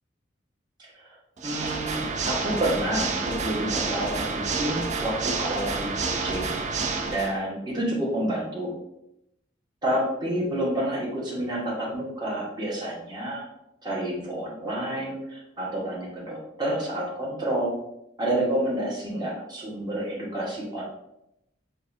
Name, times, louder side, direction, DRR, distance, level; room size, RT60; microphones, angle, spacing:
voice 1, 0.8-1.2 1.4-6.5 7.1-8.7 9.8-13.4 13.8-17.7 18.2-20.8, right 1 dB, 25° right, -5 dB, 1.3 m, -29 dB
Water / Mechanisms, 1.4-7.4, right 4 dB, 40° right, 0.4 m, -29 dB
6.5 x 2.4 x 2.6 m, 0.84 s
head